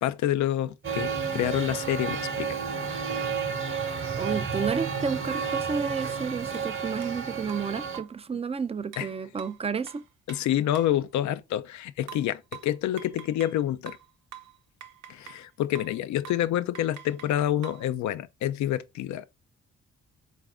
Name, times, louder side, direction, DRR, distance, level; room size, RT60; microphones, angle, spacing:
voice 1, 0.0-2.6 9.0-9.1 10.3-14.0 15.1-19.3, left 12 dB, 65° left, 0.4 m, -28 dB
Male speech man speaking, 0.8-8.0, right 6 dB, 40° right, 0.8 m, -31 dB
voice 2, 4.2-10.0, right 5 dB, 20° right, 0.4 m, -31 dB
sound 1, 6.5-6.7 7.0-7.2 7.5-8.2 8.9-11.0 12.1-13.6 13.9-15.5 15.8-16.0 16.2-16.5 16.8-17.9, right 10 dB, 80° right, 0.7 m, -46 dB
4.0 x 2.5 x 3.4 m
supercardioid pair, 55°, 31 cm